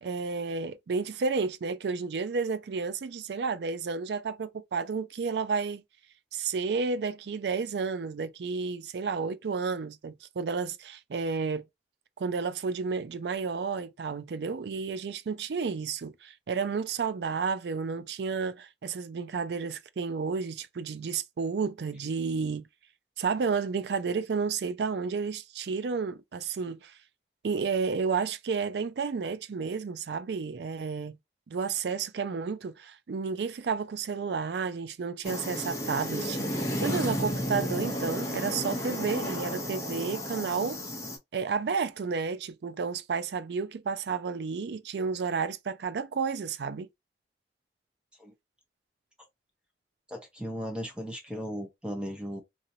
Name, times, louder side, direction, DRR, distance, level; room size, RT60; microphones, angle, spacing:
voice 1, 0.0-5.8 6.3-11.6 12.2-22.7 23.2-26.9 27.4-31.2 31.5-40.8 41.3-46.9, right 5 dB, 70° right, 0.4 m, -31 dB
sound 1, 35.2-41.2, equal, 20° left, 0.8 m, -32 dB
voice 2, 50.1-52.4, equal, 5° right, 0.9 m, -36 dB
2.8 x 2.7 x 2.7 m
head